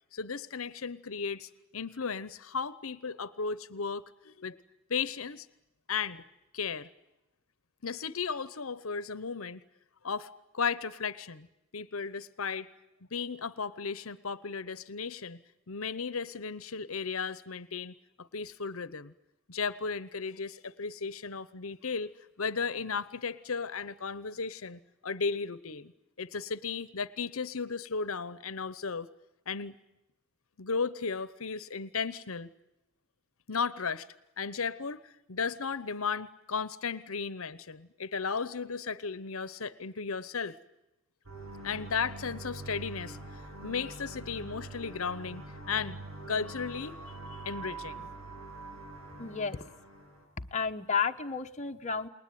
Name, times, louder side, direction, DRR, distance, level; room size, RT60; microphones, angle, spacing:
voice 1, 0.1-4.6 4.9-5.5 5.9-6.2 6.5-6.9 7.8-9.6 10.0-10.3 10.5-11.5 11.7-12.7 13.1-15.4 15.7-19.1 19.5-25.9 26.2-29.1 29.5-29.7 30.6-32.5 33.5-34.1 34.4-35.0 35.3-40.6 41.6-43.2 43.6-45.4 45.7-46.0 46.3-47.0 47.3-48.1, left 5 dB, 80° left, 17 dB, 1.0 m, -35 dB
sound 1, 41.2-50.2, right 2 dB, 85° right, 7.0 m, -44 dB
voice 2, 49.2-49.7 50.4-52.1, left 5 dB, 35° left, 4 dB, 1.1 m, -32 dB
29.5 x 21.0 x 9.4 m, 0.94 s
head